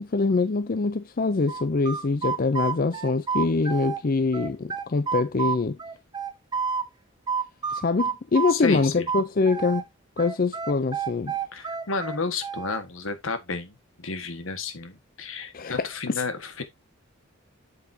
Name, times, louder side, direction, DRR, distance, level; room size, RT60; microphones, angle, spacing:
voice 1, 0.0-5.8 7.7-9.8 10.2-11.4 15.5-16.2, left 3 dB, 45° left, 0.5 m, -24 dB
sound 1, 1.5-4.0 4.3-6.9 7.3-9.8 10.2-12.8, right 6 dB, 20° right, 0.8 m, -29 dB
voice 2, 8.5-9.1 11.5-16.6, left 4 dB, 80° left, 1.6 m, -32 dB
8.2 x 7.1 x 2.7 m
head